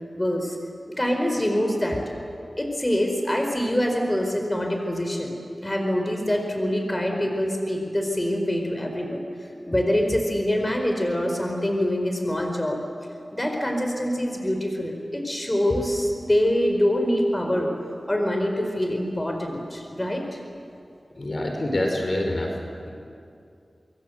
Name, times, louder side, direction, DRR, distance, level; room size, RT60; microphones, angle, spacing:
voice 1, 0.1-0.6 0.9-2.0 2.6-12.8 13.3-17.7 18.1-20.4, equal, 25° left, 3 dB, 4.6 m, -25 dB
voice 2, 21.2-22.5, left 1 dB, 55° left, 2 dB, 4.9 m, -26 dB
25.5 x 23.0 x 8.1 m, 2.4 s
cardioid pair, 45°, 0 cm